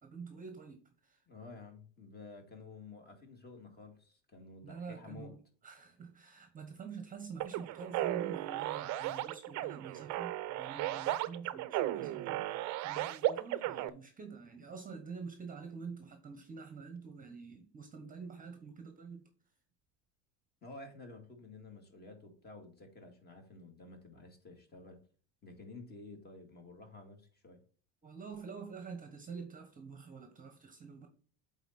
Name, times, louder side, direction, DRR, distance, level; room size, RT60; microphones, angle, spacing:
voice 1, 0.0-1.2 4.6-5.4 5.6-19.3 28.0-31.1, right 5 dB, 20° right, 1.0 m, -47 dB
voice 2, 1.3-5.3 20.6-25.0 25.4-27.6, left 3 dB, 25° left, 2.1 m, -51 dB
sound 1, 7.4-13.9, right 15 dB, 50° right, 0.6 m, -35 dB
8.0 x 4.0 x 4.2 m
cardioid pair, 135°, 38 cm